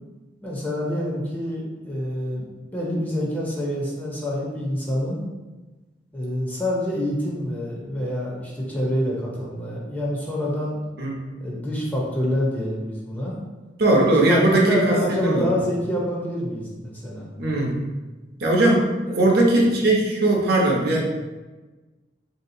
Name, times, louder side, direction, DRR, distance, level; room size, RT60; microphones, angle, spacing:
voice 1, 0.4-5.3 6.1-10.8 11.4-13.4 13.9-17.3 19.1-19.4, equal, 10° left, -4 dB, 0.6 m, -27 dB
voice 2, 13.8-15.5 17.4-17.8 18.4-21.0, right 1 dB, 55° right, -1 dB, 0.7 m, -19 dB
3.6 x 2.8 x 2.6 m, 1.2 s
head